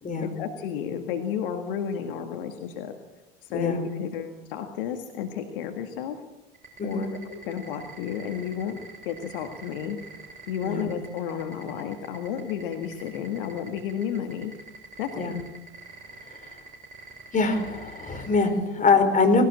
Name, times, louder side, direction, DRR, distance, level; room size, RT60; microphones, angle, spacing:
voice 1, 0.2-2.9 3.4-6.2 6.8-8.8 9.1-14.5 15.0-15.4, left 8 dB, 65° left, 5 dB, 1.9 m, -32 dB
sound 1, 6.5-18.5, right 4 dB, 25° right, 7.4 m, -44 dB
voice 2, 17.3-19.4, left 4 dB, 25° left, 6 dB, 4.8 m, -23 dB
19.5 x 18.0 x 8.5 m, 1.0 s
figure-of-eight pair, 70°, 29 cm